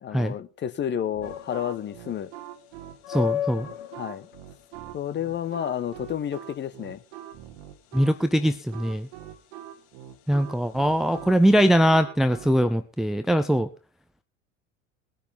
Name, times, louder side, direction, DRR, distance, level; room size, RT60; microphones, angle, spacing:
voice 1, 0.0-2.3 4.0-4.3 4.9-7.0, left 9 dB, 30° left, 1.1 m, -30 dB
sound 1, 1.1-12.6, right 12 dB, 55° right, 1.5 m, -43 dB
sound 2, 1.2-11.9, left 11 dB, 55° left, 1.4 m, -38 dB
voice 2, 3.1-3.7 7.9-9.1 10.3-13.7, equal, ahead, 0.6 m, -22 dB
20.5 x 10.0 x 3.6 m
figure-of-eight pair, 70°, 38 cm